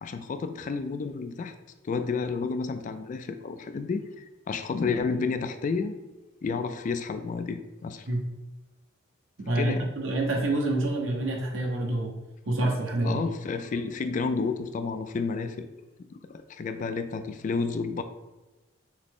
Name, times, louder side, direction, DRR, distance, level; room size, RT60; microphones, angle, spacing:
voice 1, 0.0-1.5 1.8-6.0 6.4-8.1 9.6-9.9 13.0-15.7 16.1-18.0, left 4 dB, 40° left, 9 dB, 0.3 m, -31 dB
voice 2, 9.5-12.1 12.4-13.2, right 2 dB, 85° right, 0 dB, 0.9 m, -27 dB
5.9 x 2.0 x 3.7 m, 1.1 s
head